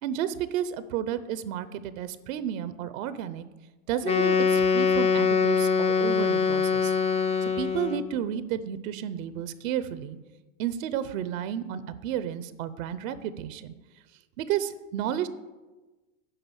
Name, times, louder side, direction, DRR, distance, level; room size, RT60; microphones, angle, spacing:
voice 1, 0.0-3.4 3.9-7.0 7.6-10.2 10.6-13.7 14.4-15.3, right 10 dB, 75° right, 14 dB, 0.8 m, -32 dB
Wind instrument woodwind instrument, 4.0-8.1, left 5 dB, 15° left, 0.5 m, -23 dB
9.9 x 5.5 x 7.1 m, 1.2 s
hypercardioid pair, 105°, 41 cm